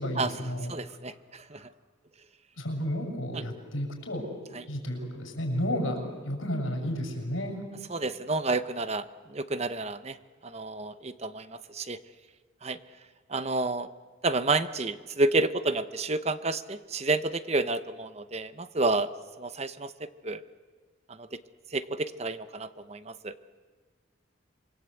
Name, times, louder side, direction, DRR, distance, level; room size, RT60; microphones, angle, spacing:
voice 1, 0.0-0.7 2.6-4.3 4.7-7.6, equal, 75° left, 2 dB, 7.0 m, -32 dB
voice 2, 0.7-1.7 4.5-4.6 7.9-10.2 10.4-12.0 12.6-12.8 13.3-13.9 14.2-19.1 19.4-20.4 21.1-21.3 21.7-23.4, right 2 dB, 30° right, 12 dB, 0.8 m, -30 dB
27.5 x 23.5 x 8.3 m, 1.4 s
head